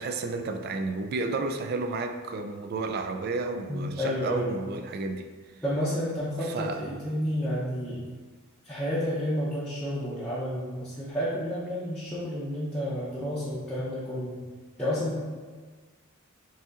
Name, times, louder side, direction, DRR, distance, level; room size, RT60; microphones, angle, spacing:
voice 1, 0.0-5.3 6.4-6.9, right 3 dB, 45° right, 6 dB, 0.3 m, -32 dB
voice 2, 3.7-4.5 5.6-8.0 8.6-14.4 14.8-15.3, equal, 5° left, -12 dB, 0.7 m, -30 dB
6.5 x 2.7 x 2.4 m, 1.4 s
head